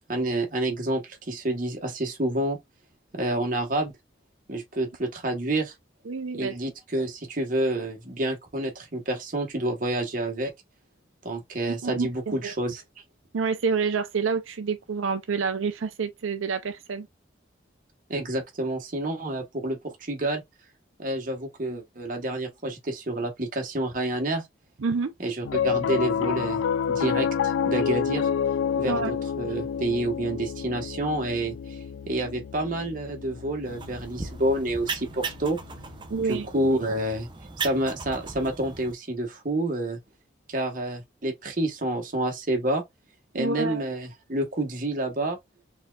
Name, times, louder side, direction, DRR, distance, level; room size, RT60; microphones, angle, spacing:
voice 1, 0.1-2.6 3.1-3.9 4.5-5.7 6.3-10.5 11.2-12.8 18.1-20.4 21.0-24.5 25.2-26.6 26.9-28.3 28.8-31.8 32.1-35.6 36.2-37.3 37.6-40.0 40.5-42.8 43.3-45.4, right 1 dB, 40° right, 1.2 m, -28 dB
voice 2, 6.1-6.5 11.7-12.5 13.3-17.1 24.8-25.1 28.9-29.2 36.1-36.5 43.3-43.8, right 5 dB, 85° right, 0.5 m, -28 dB
Piano, 25.4-35.9, left 7 dB, 85° left, 0.3 m, -29 dB
sound 1, 33.6-38.9, right 4 dB, 25° right, 0.6 m, -37 dB
4.3 x 3.6 x 2.3 m
head